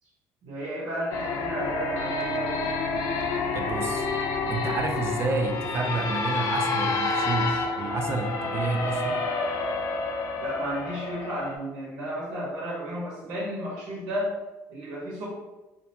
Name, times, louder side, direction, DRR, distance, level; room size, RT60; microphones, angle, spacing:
voice 1, 0.4-2.6 10.4-14.3 14.7-15.3, equal, 80° right, -6 dB, 0.8 m, -33 dB
sound 1, 1.1-11.6, left 3 dB, 65° left, 0.4 m, -29 dB
voice 2, 3.5-4.1 4.5-9.2, right 3 dB, 40° right, 4 dB, 0.3 m, -29 dB
2.5 x 2.0 x 2.8 m, 1.1 s
supercardioid pair, 85°, 6 cm